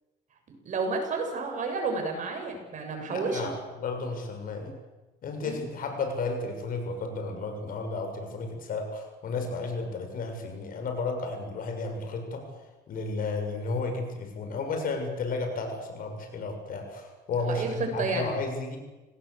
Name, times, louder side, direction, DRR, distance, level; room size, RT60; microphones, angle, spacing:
voice 1, 0.6-3.4 4.6-4.7 5.4-5.6 17.4-18.3, right 3 dB, 50° right, 4 dB, 7.3 m, -31 dB
voice 2, 3.0-4.7 5.2-12.4 12.9-18.8, left 3 dB, 55° left, 5 dB, 6.7 m, -33 dB
27.5 x 18.5 x 8.3 m, 1.1 s
cardioid pair, 110°, 17 cm